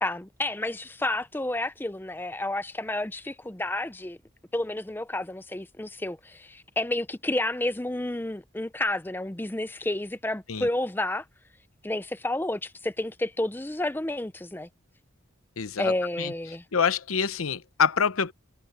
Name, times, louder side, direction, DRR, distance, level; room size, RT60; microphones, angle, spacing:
voice 1, 0.0-4.2 4.5-11.2 11.8-14.7 15.8-16.6, left 1 dB, 10° left, 0.5 m, -30 dB
voice 2, 15.6-15.9 16.2-16.3 16.7-18.3, left 6 dB, 90° left, 0.8 m, -26 dB
head